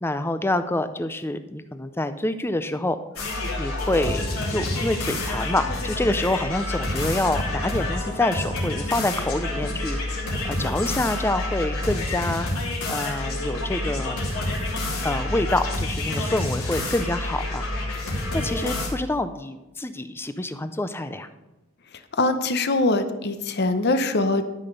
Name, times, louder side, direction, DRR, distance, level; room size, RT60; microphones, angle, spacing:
voice 1, 0.0-3.0 3.6-10.2 10.4-12.5 12.9-14.2 15.0-17.7 18.3-21.3, left 2 dB, 10° left, 11 dB, 0.4 m, -27 dB
sound 1, 3.2-18.9, left 1 dB, 85° left, 3.0 m, -28 dB
voice 2, 22.2-24.5, left 2 dB, 50° left, 10 dB, 0.8 m, -22 dB
12.5 x 6.0 x 5.3 m, 1.0 s
head